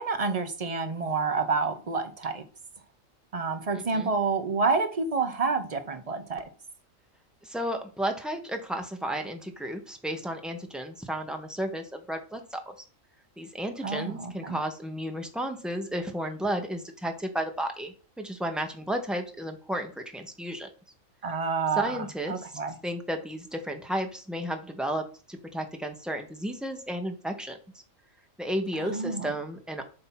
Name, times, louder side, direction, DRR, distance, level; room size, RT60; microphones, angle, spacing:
voice 1, 0.0-2.4 3.3-6.5 13.8-14.6 21.2-22.7 28.8-29.3, right 4 dB, 35° right, 0.7 m, -29 dB
voice 2, 3.7-4.1 7.4-12.8 13.4-20.7 21.8-27.6 28.4-29.9, right 1 dB, ahead, 0.6 m, -33 dB
7.8 x 2.8 x 5.7 m
omnidirectional pair, 1.4 m